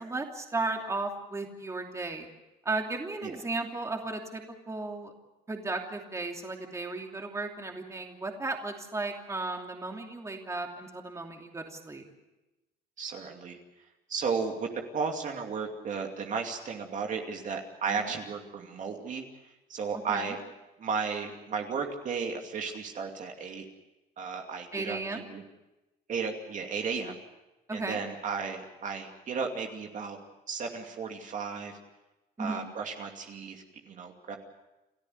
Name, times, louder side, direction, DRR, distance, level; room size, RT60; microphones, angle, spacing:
voice 1, 0.0-2.3 2.6-5.1 5.5-12.0 17.9-18.1 20.1-20.4 24.7-25.3 27.7-28.0 32.4-32.7, right 3 dB, 15° right, 2 dB, 2.9 m, -35 dB
voice 2, 13.0-13.6 14.1-19.2 19.7-20.4 20.8-23.7 24.2-25.4 26.1-27.2 27.7-30.2 30.5-31.8 32.4-34.4, right 5 dB, 50° right, 3 dB, 2.6 m, -34 dB
29.0 x 13.5 x 7.9 m, 1.0 s
cardioid pair, 110°, 17 cm